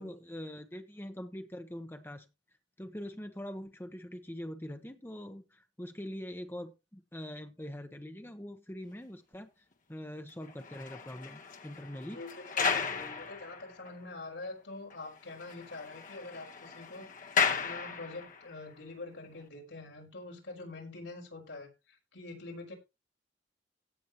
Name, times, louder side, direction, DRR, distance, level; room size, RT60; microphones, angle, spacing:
voice 1, 0.0-2.3 2.8-12.2, equal, 10° left, 1.0 m, -43 dB
sound 1, 10.4-14.1 14.4-14.5 14.9-15.0 15.3-18.5 19.2-19.4, left 6 dB, 45° left, 1.3 m, -35 dB
voice 2, 12.1-17.1 17.5-22.7, left 2 dB, 90° left, 5.0 m, -45 dB
17.0 x 7.2 x 3.0 m
head